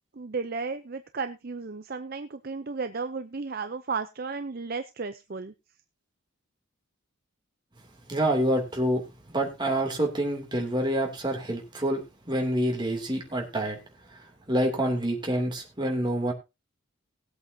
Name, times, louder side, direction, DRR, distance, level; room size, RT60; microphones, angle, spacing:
voice 1, 0.2-5.5, right 4 dB, 45° right, 9 dB, 0.6 m, -34 dB
voice 2, 8.1-9.0 9.3-13.8 14.5-16.3, right 1 dB, 20° right, 2 dB, 2.7 m, -27 dB
19.5 x 8.2 x 2.8 m, 0.25 s
head